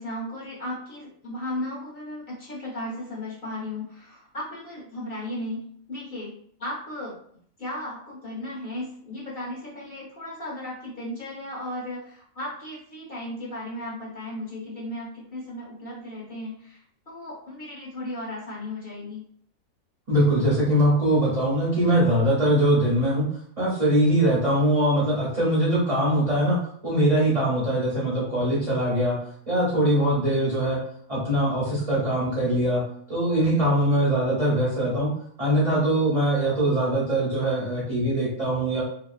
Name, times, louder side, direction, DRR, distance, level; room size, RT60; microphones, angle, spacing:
voice 1, 0.0-6.3 6.6-7.1 7.6-19.2, left 1 dB, 45° left, -6 dB, 1.1 m, -35 dB
voice 2, 20.1-23.2 23.6-29.2 29.5-30.8 31.1-32.8 33.1-35.1 35.4-38.8, right 1 dB, 40° right, -8 dB, 0.5 m, -22 dB
2.8 x 2.0 x 2.4 m, 0.64 s
omnidirectional pair, 1.5 m